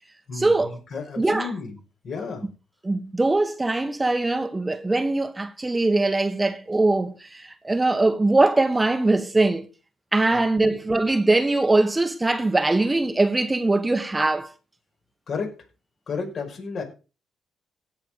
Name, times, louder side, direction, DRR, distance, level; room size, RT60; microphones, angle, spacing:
voice 1, 0.3-0.8 1.2-1.5 2.8-9.7 10.1-14.5, right 2 dB, 20° right, 1.5 m, -22 dB
voice 2, 0.9-1.7 2.0-2.5 10.3-10.7 15.3-15.5 16.1-16.8, left 4 dB, 60° left, 5.7 m, -32 dB
16.5 x 6.6 x 5.2 m
hypercardioid pair, 50°, 0 cm